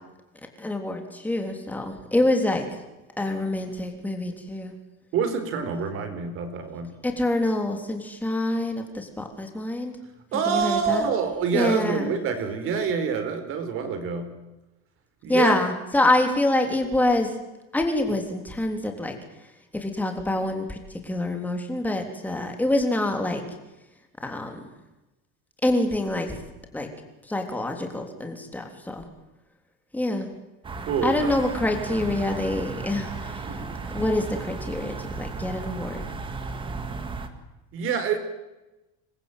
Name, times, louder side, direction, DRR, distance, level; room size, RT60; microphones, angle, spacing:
voice 1, 0.6-2.8 3.2-4.7 7.0-9.9 10.5-11.0 11.5-12.1 15.3-17.3 17.7-19.2 19.7-23.4 24.2-24.6 25.6-26.4 26.7-26.9 27.3-29.0 29.9-30.3 31.0-33.4 33.8-36.0, left 1 dB, 5° left, 4 dB, 3.4 m, -26 dB
voice 2, 5.1-6.9 10.3-14.3 15.2-15.6 30.9-31.3 33.5-33.7 37.7-38.2, right 6 dB, 40° right, 10 dB, 4.4 m, -26 dB
sound 1, 30.6-37.3, right 4 dB, 15° right, 2.0 m, -35 dB
27.0 x 22.0 x 9.3 m, 1.0 s
cardioid pair, 180°, 31 cm